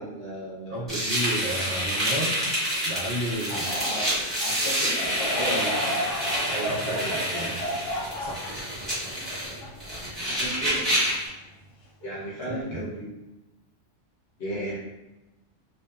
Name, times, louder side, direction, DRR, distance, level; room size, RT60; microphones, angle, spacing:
voice 1, 0.0-0.8 3.5-4.0 4.4-5.8 6.8-7.2 10.3-10.9 12.0-13.1 14.4-14.8, equal, 60° left, -6 dB, 1.1 m, -34 dB
voice 2, 0.7-2.4 2.8-3.7 6.5-7.6 8.2-8.4 12.5-12.8, right 1 dB, 45° right, -8 dB, 0.8 m, -32 dB
sound 1, 0.9-11.3, equal, ahead, 1.0 m, -28 dB
Laughter / Crowd, 5.1-10.5 11.1-11.2 12.0-12.3, equal, 85° left, 1.0 m, -32 dB
2.5 x 2.2 x 2.4 m, 1.0 s
omnidirectional pair, 1.3 m